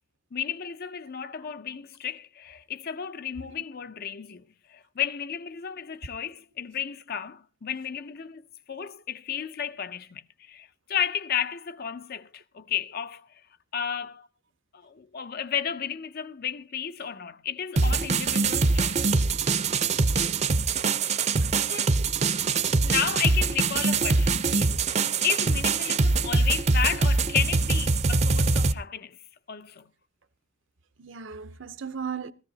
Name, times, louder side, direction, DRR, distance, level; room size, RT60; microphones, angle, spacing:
voice 1, 0.3-13.3 13.7-14.3 14.7-19.2 21.6-22.0 22.6-29.2 29.5-29.8, left 8 dB, 55° left, 0.6 m, -33 dB
sound 1, 17.8-28.7, right 3 dB, 35° right, 0.6 m, -23 dB
voice 2, 31.0-32.3, right 6 dB, 70° right, 0.8 m, -37 dB
17.5 x 13.5 x 2.8 m
head